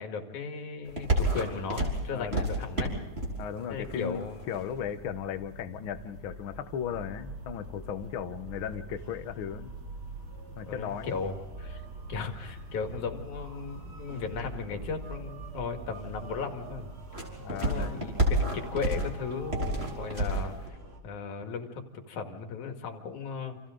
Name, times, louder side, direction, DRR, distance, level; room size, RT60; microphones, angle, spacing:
voice 1, 0.0-3.0 3.7-4.5 10.7-11.8 12.1-16.9 17.5-20.8 21.0-23.6, left 5 dB, 80° left, 5 dB, 3.3 m, -36 dB
sound 1, 0.8-20.7, right 1 dB, 20° right, 4.6 m, -35 dB
voice 2, 2.1-2.4 3.4-9.7 10.6-11.2 17.4-18.0, left 9 dB, 65° left, 9 dB, 1.4 m, -36 dB
sound 2, 5.7-21.0, right 3 dB, 45° right, 3.5 m, -45 dB
29.5 x 27.0 x 3.8 m, 1.2 s
omnidirectional pair, 3.4 m